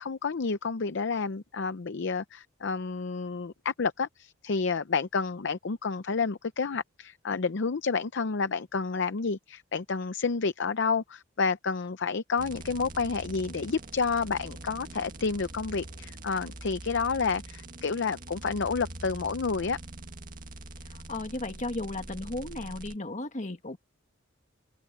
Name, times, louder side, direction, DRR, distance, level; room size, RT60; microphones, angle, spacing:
voice 1, 0.0-19.8, left 4 dB, 60° left, 0.6 m, -30 dB
sound 1, 12.4-23.0, right 2 dB, 45° right, 1.9 m, -43 dB
voice 2, 20.9-23.8, left 2 dB, 40° left, 1.7 m, -35 dB
head